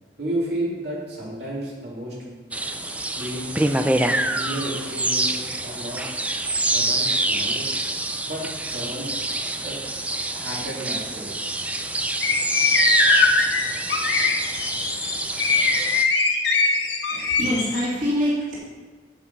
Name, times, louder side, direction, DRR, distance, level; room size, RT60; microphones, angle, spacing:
voice 1, 0.2-2.4 3.2-6.0 6.7-7.7 8.3-9.2 9.6-10.0 10.3-11.3, right 1 dB, 60° right, -6 dB, 2.9 m, -32 dB
sound 1, 2.5-16.0, right 2 dB, 10° right, 0.4 m, -26 dB
sound 2, 12.2-17.8, left 4 dB, 75° left, 1.6 m, -21 dB
voice 2, 17.1-18.5, equal, 45° right, -7 dB, 2.7 m, -25 dB
8.6 x 8.2 x 5.5 m, 1.3 s
head